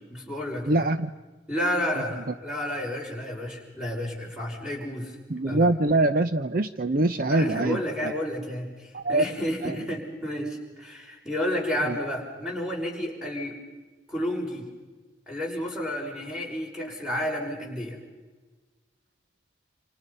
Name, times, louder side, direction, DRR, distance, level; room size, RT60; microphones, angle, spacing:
voice 1, 0.1-0.9 1.5-5.2 5.5-5.7 7.3-13.6 14.1-14.7 15.3-18.0, equal, 5° right, -1 dB, 5.7 m, -31 dB
voice 2, 0.7-1.1 5.3-8.1 8.9-9.2 9.6-9.8 11.8-12.0, right 2 dB, 50° right, 10 dB, 0.7 m, -24 dB
28.5 x 28.0 x 5.6 m, 1.3 s
head